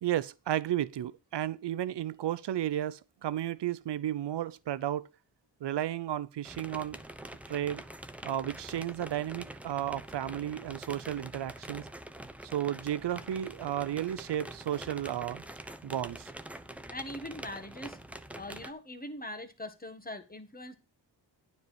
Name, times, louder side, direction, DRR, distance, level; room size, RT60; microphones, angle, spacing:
voice 1, 0.0-5.1 5.6-7.0 7.5-7.8 8.2-11.9 12.4-15.4 15.8-16.3, right 12 dB, 65° right, 0.7 m, -33 dB
sound 1, 6.4-18.7, right 1 dB, 5° right, 0.8 m, -45 dB
voice 2, 16.9-18.0 18.3-20.7, left 1 dB, 20° left, 1.7 m, -41 dB
9.4 x 4.7 x 7.2 m
cardioid pair, 75°, 46 cm